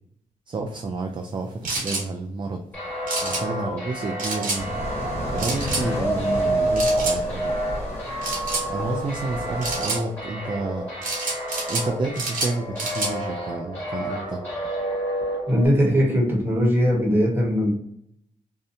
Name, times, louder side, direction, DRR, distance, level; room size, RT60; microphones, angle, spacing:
voice 1, 0.5-2.6 3.2-4.7 5.3-7.5 8.7-10.9 11.7-14.4, right 3 dB, 35° right, 3 dB, 0.3 m, -30 dB
sound 1, 1.6-2.0 3.1-3.4 4.2-4.6 5.4-5.8 6.8-7.2 8.2-8.7 9.6-10.0 11.0-11.9 12.2-13.1, right 3 dB, 65° right, 1.0 m, -28 dB
sound 2, 2.7-15.7, right 1 dB, 10° left, 1.3 m, -29 dB
sound 3, 4.6-9.9, equal, 50° left, 1.1 m, -33 dB
voice 2, 15.5-17.7, equal, 15° right, -2 dB, 1.1 m, -20 dB
2.7 x 2.1 x 2.6 m, 0.72 s
cardioid pair, 80°, 15 cm